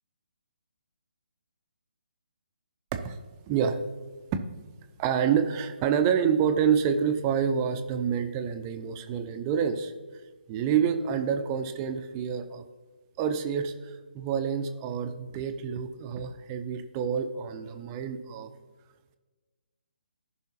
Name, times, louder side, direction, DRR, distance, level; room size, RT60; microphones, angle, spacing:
voice 1, 3.5-3.8 4.3-4.4 5.0-9.9 10.5-12.6 13.2-18.5, right 7 dB, 20° right, 7 dB, 0.5 m, -27 dB
15.0 x 5.6 x 2.9 m, 1.3 s
figure-of-eight pair, 140°, 6 cm